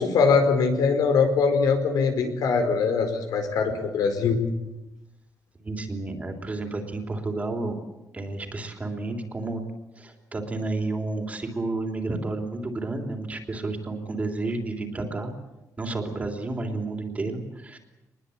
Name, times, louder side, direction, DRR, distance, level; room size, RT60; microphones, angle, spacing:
voice 1, 0.0-4.4, left 5 dB, 85° left, 6 dB, 4.8 m, -22 dB
voice 2, 5.6-7.8 8.1-9.6 10.0-15.3 15.8-17.8, right 2 dB, 20° right, 4 dB, 3.4 m, -31 dB
24.5 x 21.0 x 8.7 m, 0.98 s
cardioid pair, 150°, 6 cm